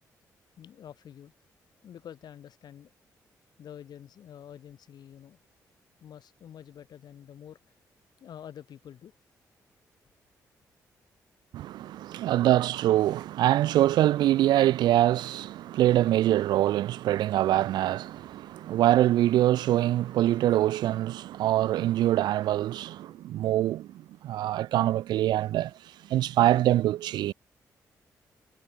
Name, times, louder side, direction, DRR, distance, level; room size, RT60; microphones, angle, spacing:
voice 1, 0.6-1.3 1.8-2.9 3.6-5.4 6.0-7.6 8.2-9.1 12.0-12.2, left 9 dB, 70° left, 3.6 m, -47 dB
voice 2, 11.5-23.9 24.2-25.7 26.1-27.3, right 13 dB, 80° right, 0.5 m, -24 dB
supercardioid pair, 55°, 7 cm